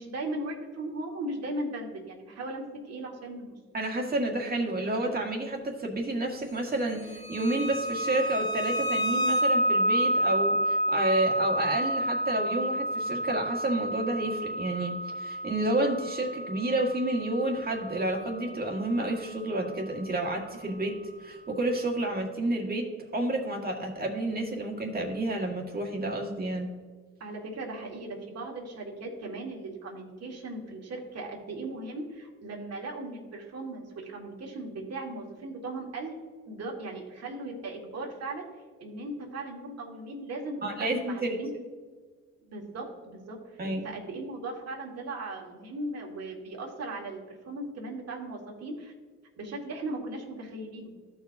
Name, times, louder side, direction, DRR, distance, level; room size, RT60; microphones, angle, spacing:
voice 1, 0.0-3.6 27.2-36.1 36.5-38.4 38.8-41.5 42.5-48.9 49.4-50.9, right 2 dB, 55° right, 0 dB, 1.9 m, -38 dB
voice 2, 3.7-20.9 21.2-22.9 23.1-26.7 40.6-41.4 43.6-43.9, right 1 dB, 30° right, 1 dB, 1.8 m, -30 dB
sound 1, 7.1-19.6, right 1 dB, 80° left, 2.2 m, -30 dB
14.5 x 4.8 x 2.7 m, 1.5 s
cardioid pair, 90°, 30 cm